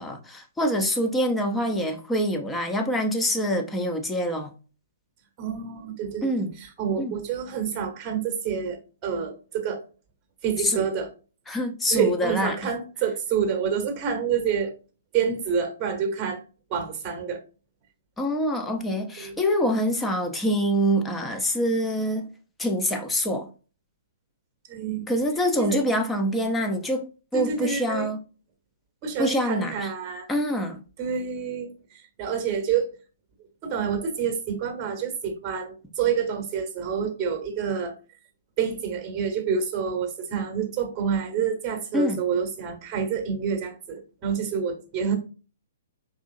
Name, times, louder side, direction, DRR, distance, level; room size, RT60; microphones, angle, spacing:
voice 1, 0.0-4.5 6.2-6.5 7.0-7.1 10.6-10.8 11.5-12.6 18.2-22.3 22.6-23.5 25.1-28.2 29.2-29.9 30.3-30.8 41.9-42.2, equal, 10° left, 0.8 m, -25 dB
voice 2, 5.4-6.3 6.6-9.8 10.4-11.1 11.9-14.7 15.1-16.4 16.7-17.4 19.2-19.3 24.7-25.1 25.6-25.8 27.3-28.1 29.0-30.3 31.0-32.9 33.6-37.9 38.6-45.2, right 7 dB, 25° right, 1.2 m, -28 dB
4.9 x 3.5 x 2.5 m
figure-of-eight pair, 120°, 0 cm